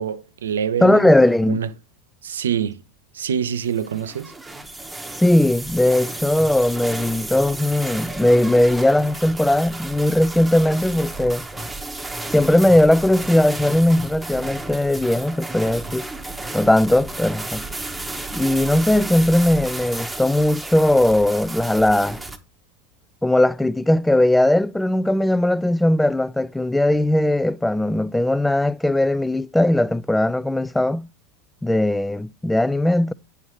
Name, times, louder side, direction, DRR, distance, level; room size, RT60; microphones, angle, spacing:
voice 1, 0.0-1.1 1.5-1.7 2.2-2.8 3.1-4.3, right 8 dB, 85° right, 0.5 m, -25 dB
voice 2, 0.8-1.6 5.2-11.5 12.3-16.1 16.5-17.6 18.3-22.2 23.2-31.1 31.6-33.1, left 1 dB, 5° left, 0.3 m, -18 dB
sound 1, 3.6-22.4, right 2 dB, 10° right, 0.9 m, -33 dB
8.5 x 5.7 x 3.2 m
hypercardioid pair, 90°, 0 cm